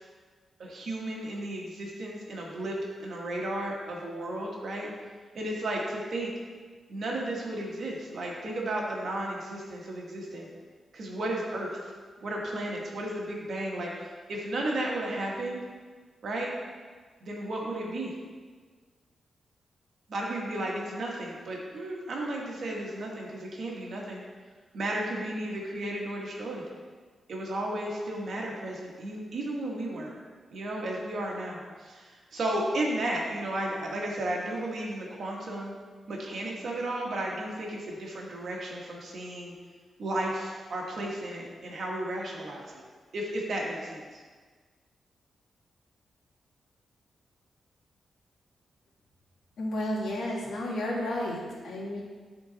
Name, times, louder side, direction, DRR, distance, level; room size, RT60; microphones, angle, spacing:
voice 1, 0.6-4.9 5.3-6.3 6.9-10.5 10.9-11.8 12.2-15.6 16.2-16.5 17.2-18.1 20.1-24.2 24.7-26.6 27.3-30.1 30.5-35.7 36.1-39.5 40.0-42.8 43.1-44.2, right 1 dB, 55° right, -2 dB, 1.4 m, -34 dB
voice 2, 49.6-52.0, left 1 dB, 85° left, -2 dB, 1.6 m, -32 dB
10.5 x 3.9 x 4.0 m, 1.5 s
wide cardioid pair, 165°, 0 cm